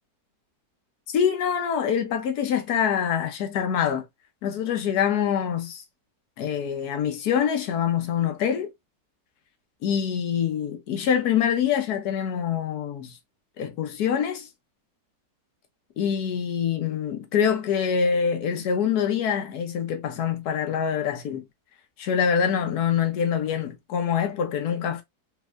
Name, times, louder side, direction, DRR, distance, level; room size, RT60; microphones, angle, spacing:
voice 1, 1.1-4.0 4.4-5.8 6.4-8.7 9.8-13.1 13.6-14.5 16.0-21.4 22.0-25.0, left 8 dB, 65° left, 1.3 m, -25 dB
3.5 x 3.2 x 2.4 m
omnidirectional pair, 1.9 m